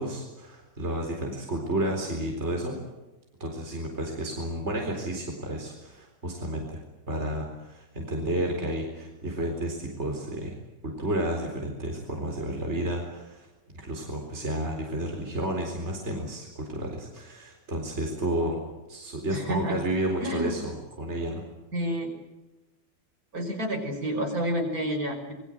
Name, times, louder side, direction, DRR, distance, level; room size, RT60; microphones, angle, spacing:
voice 1, 0.0-2.8 3.4-6.8 7.1-10.6 10.8-13.5 13.7-18.6 18.9-21.4, right 1 dB, 40° right, 1 dB, 4.5 m, -31 dB
voice 2, 19.3-19.8 20.2-20.5 21.7-22.1 23.3-25.3, equal, 55° right, 4 dB, 6.3 m, -29 dB
27.5 x 22.5 x 7.9 m, 1.1 s
omnidirectional pair, 1.9 m